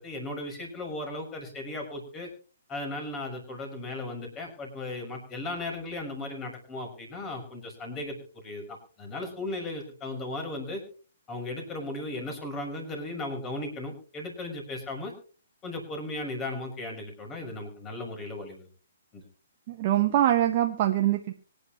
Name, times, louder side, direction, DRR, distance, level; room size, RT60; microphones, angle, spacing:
voice 1, 0.0-2.3 2.7-10.8 11.3-15.1 15.6-18.7 19.1-19.2, left 2 dB, 15° left, 3 dB, 6.3 m, -36 dB
voice 2, 19.7-21.3, right 12 dB, 35° right, 3 dB, 1.3 m, -24 dB
24.5 x 10.5 x 3.1 m, 0.38 s
figure-of-eight pair, 125°, 0 cm